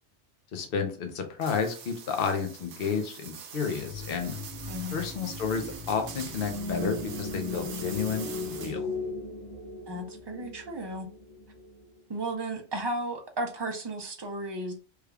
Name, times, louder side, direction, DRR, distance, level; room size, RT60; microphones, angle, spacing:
voice 1, 0.5-4.4 4.9-8.9, left 6 dB, 60° left, 5 dB, 0.8 m, -31 dB
sound 1, 1.4-9.0, right 7 dB, 85° right, 1.0 m, -44 dB
sound 2, 3.7-12.0, left 3 dB, 30° left, 1.2 m, -38 dB
voice 2, 4.7-5.0 9.9-11.1 12.1-14.7, right 1 dB, 40° right, 3 dB, 0.3 m, -34 dB
3.4 x 2.3 x 3.2 m, 0.37 s
omnidirectional pair, 1.2 m